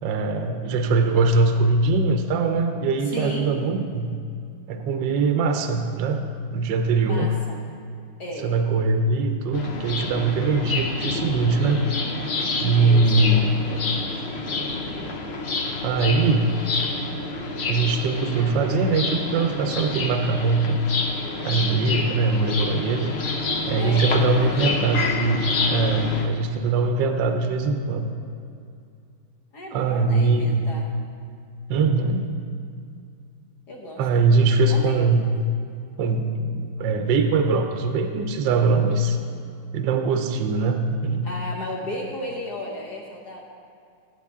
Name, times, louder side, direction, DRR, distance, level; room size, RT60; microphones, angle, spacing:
voice 1, 0.0-4.1 4.7-6.2 6.5-7.3 8.4-11.8 12.6-13.6 15.8-16.5 17.7-20.9 21.4-23.2 23.7-25.4 25.7-28.1 29.7-30.6 31.7-32.3 34.0-35.4 36.0-39.2 39.7-41.2, right 3 dB, 70° right, 6 dB, 1.3 m, -22 dB
voice 2, 3.0-3.5 7.0-7.6 8.2-8.5 12.7-14.2 23.5-24.9 29.5-30.8 33.7-34.4 34.7-35.1 41.2-43.4, left 1 dB, 55° left, -1 dB, 1.4 m, -35 dB
sound 1, 9.5-26.3, left 3 dB, 80° left, 0.5 m, -28 dB
15.5 x 8.1 x 3.6 m, 2.4 s
omnidirectional pair, 2.3 m